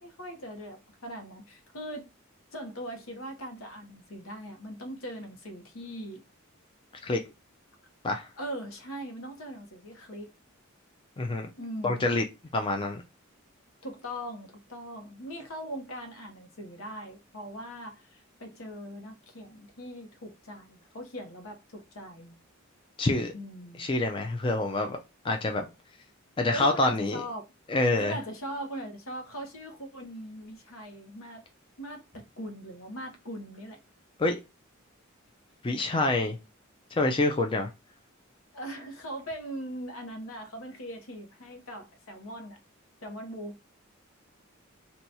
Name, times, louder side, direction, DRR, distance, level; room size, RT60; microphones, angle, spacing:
voice 1, 0.0-2.1 2.5-6.2 8.4-10.3 11.6-12.2 13.8-22.3 23.3-23.9 26.5-27.4 27.9-31.4 31.8-33.8 38.5-42.6 43.0-43.6, equal, 80° left, 0.9 m, -40 dB
voice 2, 11.2-11.5 11.8-12.2 12.5-13.0 23.0-23.3 23.8-25.7 26.4-27.2 27.7-28.1 34.2-34.4 35.6-36.4 36.9-37.7, left 2 dB, 25° left, 0.4 m, -26 dB
2.9 x 2.3 x 4.0 m
head